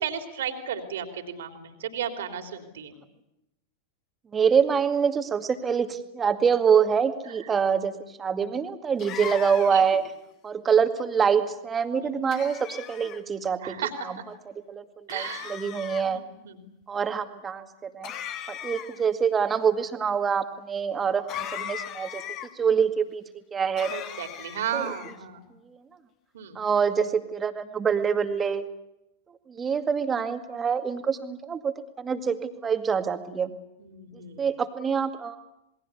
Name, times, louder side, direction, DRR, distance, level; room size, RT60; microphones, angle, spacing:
voice 1, 0.0-2.9 9.7-9.8 12.0-12.1 13.6-13.9 15.1-15.5 16.0-16.7 23.9-25.5 26.3-26.6 33.8-34.4, right 8 dB, 60° right, 6 dB, 3.3 m, -34 dB
voice 2, 4.3-10.0 10.4-13.8 14.1-14.2 14.5-16.2 16.9-18.1 18.5-22.2 22.6-24.0 24.7-25.1 25.7-25.8 26.6-28.6 29.5-33.5 34.4-35.4, right 6 dB, 20° right, 8 dB, 2.2 m, -25 dB
sound 1, 9.0-9.9 12.3-13.2 15.1-16.0 18.0-19.1 21.3-22.5 23.8-25.2, left 10 dB, 35° left, 2.0 m, -38 dB
27.5 x 21.5 x 8.3 m, 0.88 s
figure-of-eight pair, 90°, 0 cm